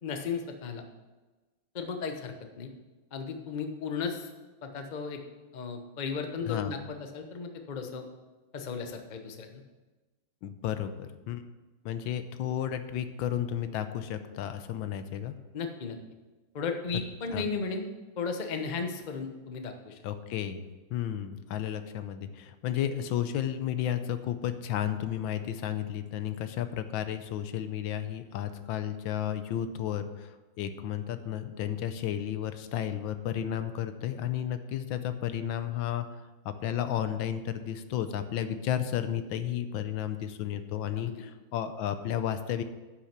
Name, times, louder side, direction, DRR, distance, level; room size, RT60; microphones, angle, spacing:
voice 1, 0.0-0.8 1.7-2.7 3.1-4.3 4.6-5.2 5.5-8.1 8.5-9.6 15.5-16.0 16.5-17.9 18.2-20.0 41.0-41.2, left 5 dB, 45° left, 5 dB, 0.6 m, -35 dB
voice 2, 10.4-11.4 11.8-15.3 17.3-17.5 20.0-20.6 20.9-30.3 30.6-36.1 36.4-42.6, left 10 dB, 80° left, 10 dB, 1.4 m, -32 dB
9.8 x 6.0 x 5.9 m, 1.2 s
omnidirectional pair, 2.2 m